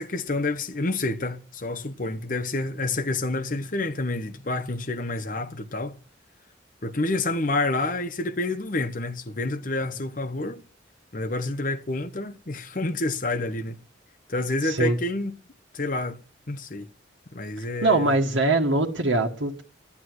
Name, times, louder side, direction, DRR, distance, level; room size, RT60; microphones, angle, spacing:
voice 1, 0.0-6.0 6.8-10.6 11.1-13.8 14.3-15.4 15.7-16.2 16.5-16.9 17.3-18.1, left 2 dB, 45° left, 1.0 m, -28 dB
voice 2, 14.6-15.0 17.8-19.6, right 2 dB, 75° right, 1.6 m, -22 dB
11.5 x 8.6 x 7.8 m
head